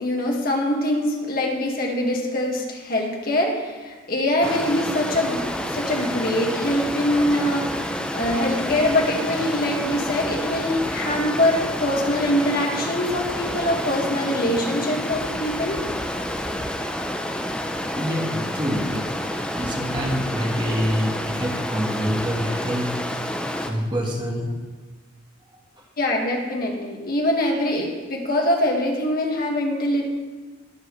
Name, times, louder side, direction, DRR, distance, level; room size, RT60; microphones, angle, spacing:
voice 1, 0.0-15.8 26.0-30.0, left 1 dB, 50° left, 0 dB, 1.8 m, -23 dB
Stream, 4.4-23.7, left 1 dB, 5° left, 0.7 m, -29 dB
voice 2, 17.9-19.1 19.5-22.9 23.6-24.5, equal, 25° right, -1 dB, 1.6 m, -26 dB
19.5 x 7.5 x 3.2 m, 1.3 s
head